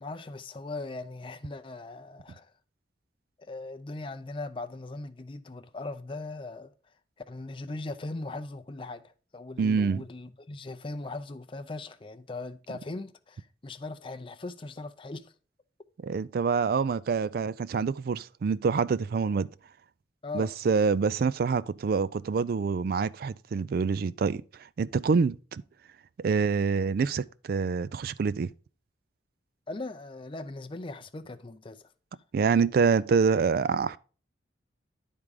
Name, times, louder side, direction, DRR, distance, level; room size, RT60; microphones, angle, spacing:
voice 1, 0.0-2.5 3.4-6.7 7.3-15.3 20.2-20.5 29.7-31.9, left 2 dB, 30° left, 0.5 m, -39 dB
voice 2, 9.6-10.0 16.0-19.5 20.3-24.4 24.8-25.6 26.2-28.5 32.3-34.0, right 5 dB, 55° right, 0.3 m, -26 dB
10.5 x 3.7 x 4.8 m
head